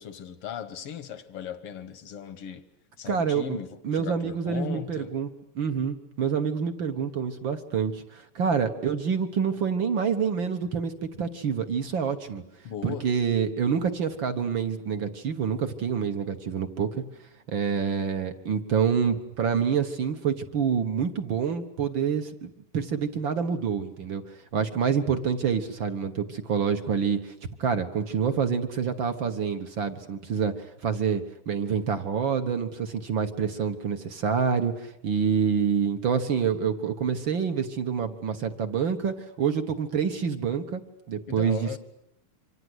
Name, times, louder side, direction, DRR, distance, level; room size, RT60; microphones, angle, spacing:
voice 1, 0.0-2.6 3.0-5.1 12.6-13.1 41.3-41.8, left 9 dB, 60° left, 1.6 m, -38 dB
voice 2, 3.1-3.6 3.8-5.3 5.5-10.9 11.2-12.4 12.8-17.0 17.5-27.3 27.6-40.8 41.1-41.8, right 6 dB, 55° right, 1.3 m, -27 dB
27.0 x 25.5 x 8.1 m
omnidirectional pair, 3.9 m